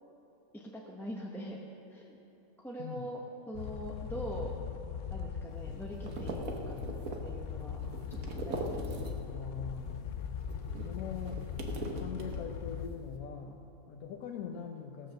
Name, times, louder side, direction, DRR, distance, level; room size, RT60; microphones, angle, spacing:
voice 1, 0.5-1.6 1.9-2.2 2.6-3.2 3.5-4.5 5.1-6.8 7.2-7.8 8.1-9.1, right 1 dB, ahead, -3 dB, 0.7 m, -43 dB
sound 1, 3.5-12.9, left 7 dB, 60° left, 0.6 m, -40 dB
sound 2, 5.5-9.4 9.7-12.8, right 3 dB, 75° right, 1.5 m, -41 dB
voice 2, 9.3-10.3 10.8-11.4 12.0-15.1, left 7 dB, 90° left, 1 dB, 1.2 m, -42 dB
16.5 x 7.7 x 6.5 m, 2.9 s
omnidirectional pair, 1.5 m